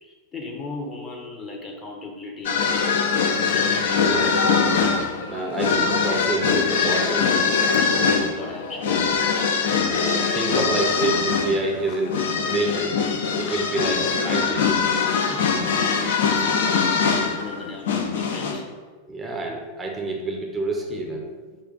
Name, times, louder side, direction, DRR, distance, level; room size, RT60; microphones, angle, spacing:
voice 1, 0.0-3.4 3.7-4.6 7.8-9.2 15.3-16.9 17.4-18.7, left 3 dB, 20° left, 0 dB, 0.6 m, -37 dB
sound 1, 2.4-18.6, left 5 dB, 60° left, 0.4 m, -22 dB
voice 2, 4.0-4.3 5.3-7.4 9.9-12.9 13.4-14.7 19.1-21.3, right 2 dB, 15° right, 1 dB, 0.5 m, -28 dB
4.2 x 2.4 x 3.9 m, 1.4 s
figure-of-eight pair, 90°, 0 cm